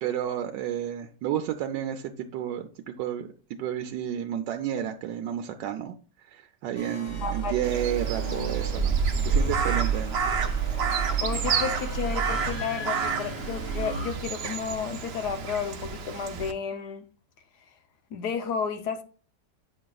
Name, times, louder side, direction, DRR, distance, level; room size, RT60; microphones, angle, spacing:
voice 1, 0.0-9.0 9.2-10.2, right 10 dB, 90° right, 1.2 m, -31 dB
sound 1, 6.7-14.1, right 6 dB, 30° left, 1.7 m, -31 dB
voice 2, 7.2-7.7 11.2-17.1 18.1-19.0, left 6 dB, 75° left, 1.3 m, -32 dB
Crow, 7.6-16.5, right 5 dB, 70° right, 0.6 m, -30 dB
8.5 x 6.2 x 2.3 m
omnidirectional pair, 1.8 m